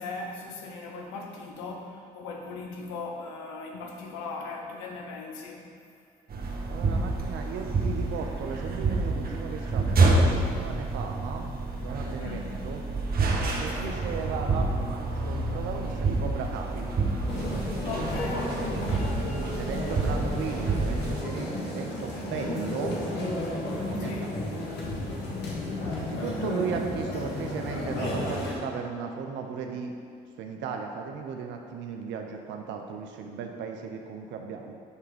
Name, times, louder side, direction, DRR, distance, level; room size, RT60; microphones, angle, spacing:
voice 1, 0.0-5.7 12.2-12.6 13.7-14.1 17.8-18.6 24.0-24.4, left 3 dB, 90° left, 2 dB, 0.9 m, -39 dB
sound 1, 6.3-21.2, right 3 dB, 55° right, 1.2 m, -28 dB
voice 2, 6.7-12.8 13.6-16.9 19.3-23.0 23.9-24.5 26.0-29.9 30.4-34.8, right 6 dB, 75° right, 3 dB, 0.6 m, -36 dB
sound 2, 17.3-28.5, left 1 dB, 65° left, 1.7 m, -32 dB
9.6 x 3.5 x 5.0 m, 2.4 s
hypercardioid pair, 55°, 19 cm